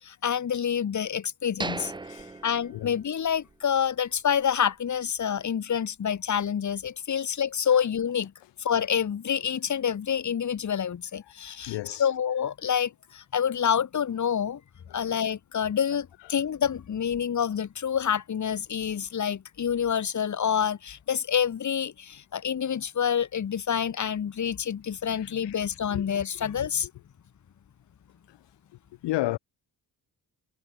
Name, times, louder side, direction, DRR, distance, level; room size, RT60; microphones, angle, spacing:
voice 1, 0.0-1.9 2.4-8.3 8.6-14.6 14.9-26.9, left 8 dB, 45° left, 1.0 m, -27 dB
sound 1, 1.6-3.5 3.9-4.0 4.5-4.7, right 3 dB, 10° right, 0.5 m, -38 dB
voice 2, 2.0-2.4 2.7-2.9 7.7-7.8 11.4-12.1 14.9-15.1 16.2-16.4 25.1-25.6 25.9-26.1 26.6-26.7 28.3-28.5 29.0-29.4, left 17 dB, 80° left, 0.5 m, -34 dB
cardioid pair, 65°, 42 cm